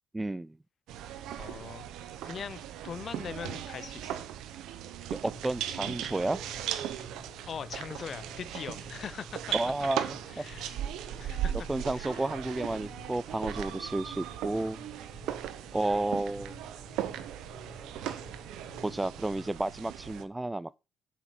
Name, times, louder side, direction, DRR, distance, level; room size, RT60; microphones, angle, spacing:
voice 1, 0.1-0.6 5.1-6.4 9.5-10.4 11.7-14.8 15.7-16.6 18.8-20.8, right 2 dB, 15° right, 0.4 m, -32 dB
sound 1, 0.9-20.3, right 11 dB, 90° right, 0.9 m, -38 dB
voice 2, 1.4-1.9 2.2-4.3 7.5-9.5 10.3-10.7 11.2-11.7 11.9-12.3, left 7 dB, 50° left, 0.6 m, -41 dB
sound 2, 5.2-19.5, left 3 dB, 30° left, 1.4 m, -52 dB
7.7 x 6.0 x 5.5 m
cardioid pair, 90°, 0 cm